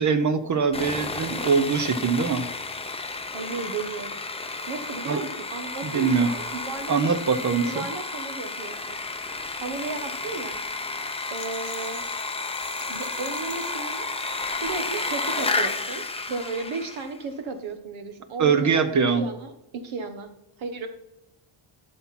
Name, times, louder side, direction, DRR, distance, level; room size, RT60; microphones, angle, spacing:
voice 1, 0.0-2.5 5.0-5.2 5.8-6.3 6.9-7.9 18.4-19.2, right 5 dB, 35° right, 10 dB, 0.8 m, -22 dB
Sawing, 0.7-17.2, left 3 dB, 10° left, 0.6 m, -32 dB
voice 2, 3.3-4.2 4.7-7.0 7.6-9.0 9.6-10.6 11.3-12.0 12.9-14.1 14.5-18.8 19.2-20.3 20.6-20.9, right 4 dB, 70° right, 7 dB, 1.4 m, -34 dB
Rattle, 11.2-14.9 15.3-16.0, left 10 dB, 70° left, 1.2 m, -46 dB
12.0 x 5.9 x 4.3 m, 0.90 s
cardioid pair, 125°, 50 cm